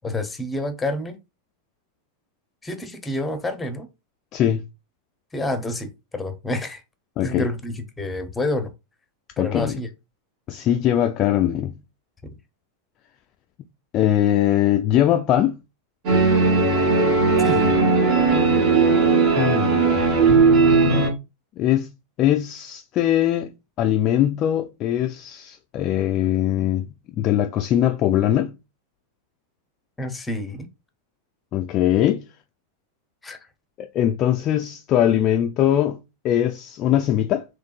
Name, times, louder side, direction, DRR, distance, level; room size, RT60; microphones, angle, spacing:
voice 1, 0.0-1.2 2.6-3.9 5.3-6.8 7.2-8.7 9.4-9.9 17.4-17.8 30.0-30.7 33.2-33.5, left 1 dB, 10° left, 0.7 m, -28 dB
voice 2, 4.3-4.6 7.2-7.5 9.4-9.8 10.5-11.8 13.9-15.6 19.4-20.0 21.6-21.9 22.2-23.5 23.8-26.9 27.2-28.5 31.5-32.2 33.8-36.0 36.2-37.4, left 11 dB, 35° left, 0.3 m, -21 dB
sound 1, 16.1-21.1, right 4 dB, 45° right, 1.2 m, -17 dB
3.5 x 3.1 x 2.4 m
figure-of-eight pair, 90°, 0 cm